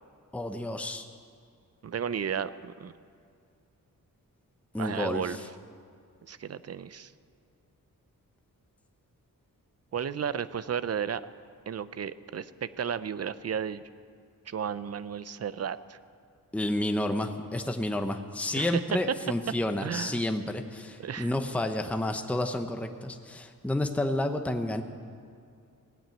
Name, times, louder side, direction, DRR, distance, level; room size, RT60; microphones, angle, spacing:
voice 1, 0.3-1.1 4.7-5.4 16.5-24.8, left 1 dB, 5° left, 6 dB, 0.8 m, -30 dB
voice 2, 1.8-2.9 4.8-5.4 6.3-7.1 9.9-11.2 11.7-13.8 14.5-16.0 18.5-18.8 19.8-20.2 21.0-21.3, right 8 dB, 45° right, 15 dB, 0.6 m, -33 dB
17.0 x 8.8 x 9.2 m, 2.4 s
wide cardioid pair, 95°, 34 cm